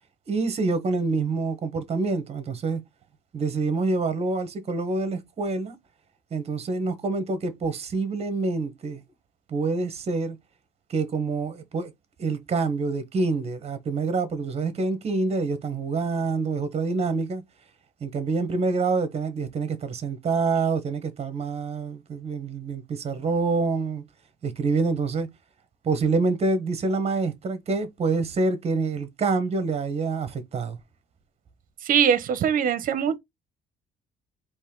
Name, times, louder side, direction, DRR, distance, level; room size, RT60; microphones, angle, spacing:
voice 1, 0.3-2.8 3.3-5.8 6.3-9.0 9.5-10.4 10.9-11.9 12.2-17.4 18.0-24.0 24.4-25.3 25.8-30.8, right 4 dB, 40° right, 1.2 m, -26 dB
voice 2, 31.8-33.2, right 8 dB, 55° right, 0.8 m, -22 dB
4.2 x 3.1 x 3.7 m
cardioid pair, 110°, 17 cm